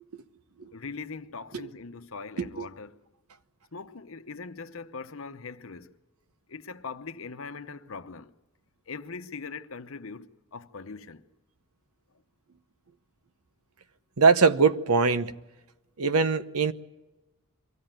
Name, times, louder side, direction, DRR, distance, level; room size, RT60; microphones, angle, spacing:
voice 1, 0.7-3.0 3.7-6.0 6.5-8.3 8.9-11.2, left 4 dB, 65° left, 0.9 m, -41 dB
voice 2, 14.2-15.4 16.0-16.7, right 5 dB, 85° right, 0.9 m, -22 dB
23.0 x 15.5 x 9.0 m
head